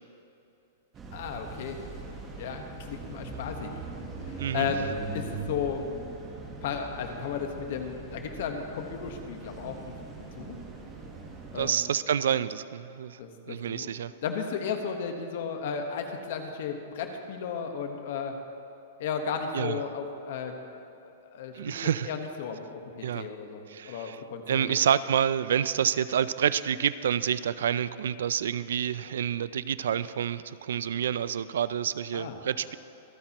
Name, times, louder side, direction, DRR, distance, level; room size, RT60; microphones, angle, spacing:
sound 1, 0.9-11.7, right 3 dB, 15° right, 1.2 m, -41 dB
voice 1, 1.1-1.8 2.4-3.7 4.2-5.8 6.6-9.8 10.4-10.6 11.5-11.8 13.2-13.9 14.2-18.3 19.0-20.5 21.3-24.8 32.1-32.4, left 6 dB, 50° left, 5 dB, 1.2 m, -34 dB
voice 2, 4.4-4.7 11.6-13.2 13.5-14.1 19.5-19.8 21.5-22.1 23.0-23.3 23.7-24.2 24.5-32.8, right 9 dB, 80° right, 16 dB, 0.4 m, -28 dB
25.5 x 8.8 x 3.0 m, 2.8 s
supercardioid pair, 175°, 0 cm